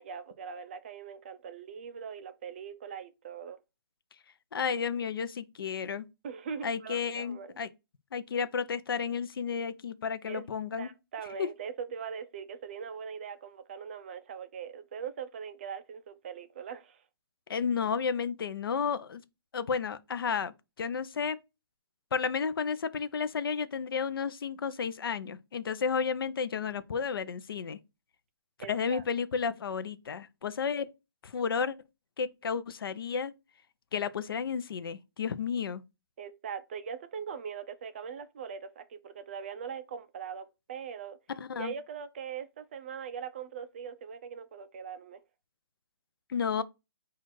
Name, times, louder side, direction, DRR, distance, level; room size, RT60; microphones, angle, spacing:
voice 1, 0.0-3.6 6.2-7.5 10.3-10.5 10.8-17.0 28.6-29.0 36.2-41.2 41.5-45.2, right 7 dB, 30° right, 0.3 m, -41 dB
voice 2, 4.5-6.1 6.6-7.7 8.1-10.9 11.4-11.5 17.5-19.2 19.5-21.4 22.1-27.8 28.7-30.9 31.2-31.8 32.2-33.3 33.9-35.8 41.4-41.7 46.3-46.6, left 6 dB, 65° left, 0.5 m, -32 dB
4.2 x 2.4 x 4.5 m
hypercardioid pair, 160°, 13 cm